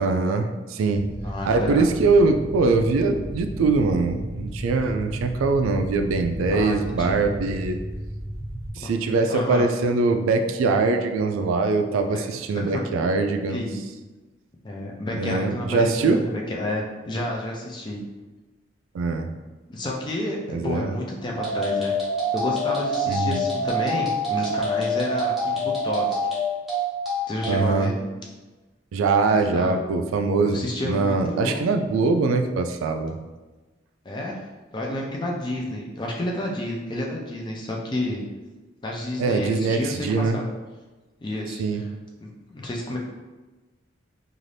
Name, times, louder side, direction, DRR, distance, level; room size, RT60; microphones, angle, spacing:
voice 1, 0.0-1.1 1.5-7.8 8.8-13.6 15.2-16.2 18.9-19.3 20.5-21.0 23.1-23.4 27.5-27.9 28.9-33.2 39.2-40.4 41.6-41.8, right 3 dB, 90° right, 6 dB, 0.3 m, -22 dB
sound 1, 1.0-8.7, equal, 50° left, 1.3 m, -34 dB
voice 2, 1.2-1.8 6.5-7.2 8.8-8.9 9.3-9.7 12.1-12.2 12.7-12.8 13.5-13.8 14.6-18.0 19.7-22.0 22.3-26.2 27.3-28.0 29.3-29.7 30.4-31.6 34.0-34.4 34.7-38.2 38.8-40.5 41.2-41.9 42.2-43.0, left 1 dB, 20° left, -1 dB, 0.4 m, -30 dB
sound 2, 21.4-27.6, equal, ahead, 0.8 m, -25 dB
2.6 x 2.5 x 3.2 m, 1.2 s
head